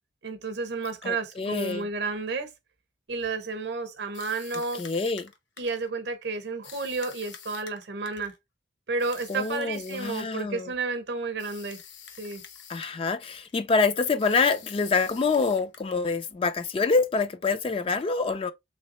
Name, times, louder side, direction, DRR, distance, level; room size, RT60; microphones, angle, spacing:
voice 1, 0.2-2.5 3.1-4.8 5.6-8.3 8.9-11.8 12.2-12.4, right 3 dB, 60° right, 0.7 m, -31 dB
voice 2, 1.0-1.9 4.7-5.3 9.3-10.7 12.7-18.5, left 4 dB, 30° left, 0.3 m, -26 dB
sound 1, 4.1-5.9 6.6-8.4 9.0-10.4 11.4-13.0 13.2-13.6 14.2-16.1, left 8 dB, 75° left, 0.8 m, -47 dB
3.4 x 3.2 x 2.8 m
head